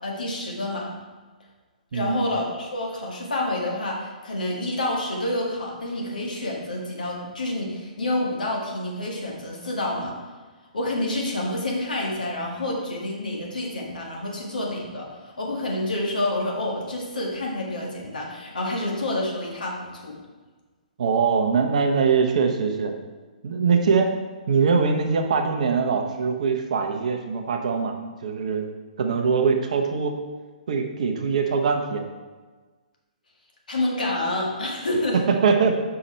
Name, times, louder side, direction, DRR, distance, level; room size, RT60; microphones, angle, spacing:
voice 1, 0.0-0.9 1.9-10.2 10.7-20.2 33.7-35.2, left 1 dB, 75° left, -2 dB, 1.8 m, -28 dB
voice 2, 1.9-2.3 21.0-22.9 23.4-24.1 24.5-28.0 28.2-28.6 29.0-30.1 30.7-32.0 35.3-35.8, right 5 dB, 55° right, 4 dB, 0.8 m, -22 dB
5.7 x 4.8 x 4.2 m, 1.3 s
figure-of-eight pair, 125°, 5 cm